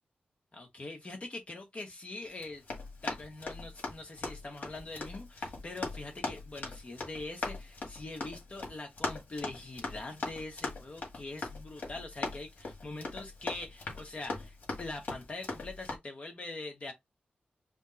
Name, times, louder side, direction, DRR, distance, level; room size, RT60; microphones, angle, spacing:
voice 1, 0.5-2.6 3.0-16.9, left 2 dB, 40° left, 1.0 m, -43 dB
Run, 2.3-16.0, left 3 dB, 60° left, 1.8 m, -40 dB
4.9 x 2.0 x 3.9 m
wide cardioid pair, 105°, 3 cm